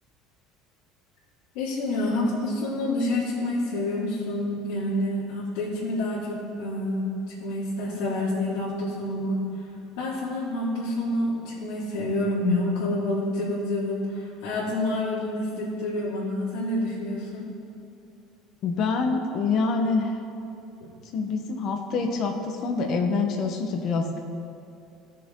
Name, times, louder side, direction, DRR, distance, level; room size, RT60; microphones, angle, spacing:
voice 1, 1.5-7.1 7.4-9.4 10.0-17.5, left 1 dB, 75° left, -9 dB, 2.4 m, -28 dB
voice 2, 18.6-20.2 21.1-24.2, left 4 dB, 40° left, 4 dB, 1.1 m, -26 dB
17.0 x 6.7 x 3.8 m, 2.7 s
cardioid pair, 175°, 0 cm